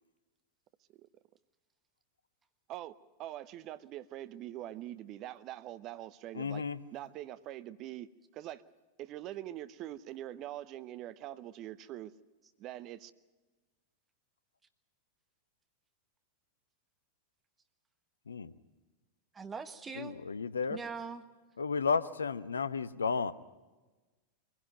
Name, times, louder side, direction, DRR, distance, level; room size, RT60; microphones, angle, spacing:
voice 1, 2.7-6.7 6.9-8.6 9.0-12.1 12.6-13.1, right 13 dB, 35° right, 14 dB, 0.8 m, -44 dB
voice 2, 6.3-6.8 18.3-18.5 20.0-20.8 21.6-23.3, left 5 dB, 75° left, 15 dB, 0.9 m, -33 dB
voice 3, 19.3-20.1 20.7-21.2, right 5 dB, 15° right, 9 dB, 1.3 m, -41 dB
23.5 x 17.0 x 9.2 m, 1.2 s
figure-of-eight pair, 90°, 0 cm